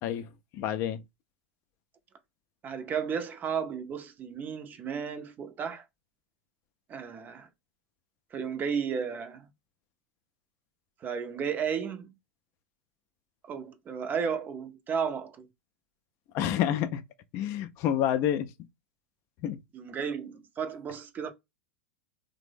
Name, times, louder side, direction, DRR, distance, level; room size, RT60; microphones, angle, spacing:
voice 1, 0.0-1.0 16.3-17.0 17.3-18.5 19.4-19.6, left 10 dB, 45° left, 0.4 m, -29 dB
voice 2, 2.6-5.8 6.9-7.5 8.3-9.5 11.0-12.1 13.4-15.5 19.7-21.3, right 6 dB, 30° right, 0.5 m, -33 dB
3.2 x 2.0 x 3.3 m
figure-of-eight pair, 90°, 6 cm